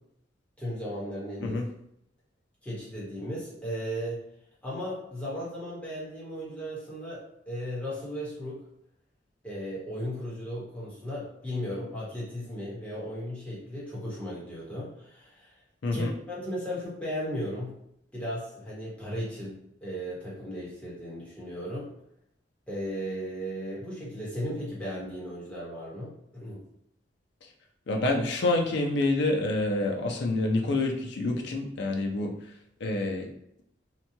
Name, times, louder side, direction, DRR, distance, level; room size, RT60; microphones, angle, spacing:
voice 1, 0.6-1.6 2.6-4.2 4.6-8.6 9.4-15.5 15.9-17.8 18.1-21.9 22.7-26.6, equal, 5° left, -7 dB, 1.0 m, -36 dB
voice 2, 27.9-32.5 32.8-33.3, left 2 dB, 65° left, 2 dB, 0.5 m, -27 dB
2.9 x 2.2 x 2.7 m, 0.76 s
head